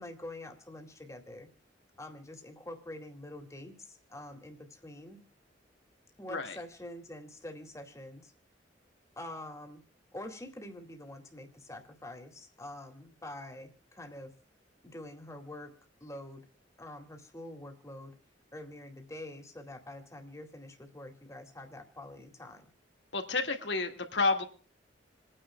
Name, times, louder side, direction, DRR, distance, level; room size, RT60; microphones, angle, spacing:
voice 1, 0.0-1.5 2.0-5.2 6.2-8.3 9.2-9.8 10.1-14.3 14.8-15.7 16.0-16.4 16.8-18.1 18.5-22.7, left 1 dB, 15° left, 4 dB, 2.2 m, -46 dB
voice 2, 23.1-24.4, left 3 dB, 70° left, 5 dB, 1.8 m, -30 dB
28.0 x 9.9 x 2.2 m, 0.38 s
head